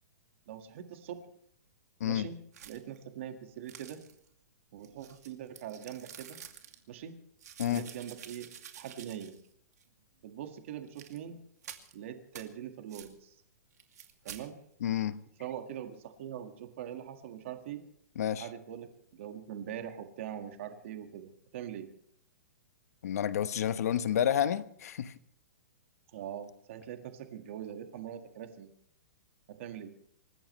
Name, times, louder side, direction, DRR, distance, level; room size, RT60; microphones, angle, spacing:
voice 1, 0.5-1.2 2.0-4.0 4.7-6.4 6.9-7.2 7.7-8.5 8.8-9.4 10.2-11.4 11.9-13.3 14.2-14.6 15.4-17.8 18.4-21.9 26.1-28.7 29.5-30.0, right 10 dB, 45° right, 6 dB, 1.9 m, -42 dB
sound 1, 2.5-3.0 3.7-4.3 4.8-6.8 7.4-9.5 9.8-9.9 10.9-11.2 11.6-11.9 12.3-12.5 12.9-13.1 13.8-14.4, right 8 dB, 75° right, 2.6 m, -49 dB
voice 2, 14.8-15.2 18.2-18.4 23.0-25.1, left 10 dB, 65° left, 12 dB, 1.1 m, -30 dB
28.0 x 15.5 x 3.3 m, 0.66 s
hypercardioid pair, 165°, 9 cm